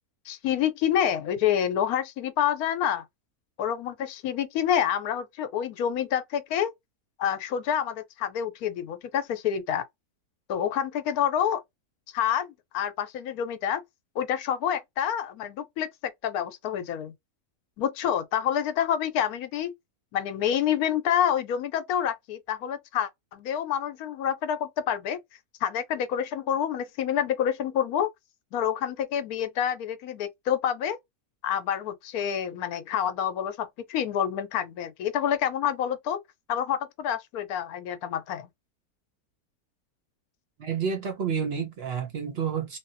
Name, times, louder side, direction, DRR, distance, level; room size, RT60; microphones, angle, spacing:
voice 1, 0.3-3.0 3.6-6.7 7.2-9.9 10.5-11.6 12.1-13.8 14.2-17.1 17.8-19.7 20.1-25.2 25.6-28.1 28.5-31.0 31.4-36.2 36.5-38.5, left 9 dB, 80° left, 1.1 m, -28 dB
voice 2, 40.6-42.8, right 7 dB, 60° right, 0.7 m, -29 dB
3.4 x 2.1 x 2.6 m
omnidirectional pair, 1.6 m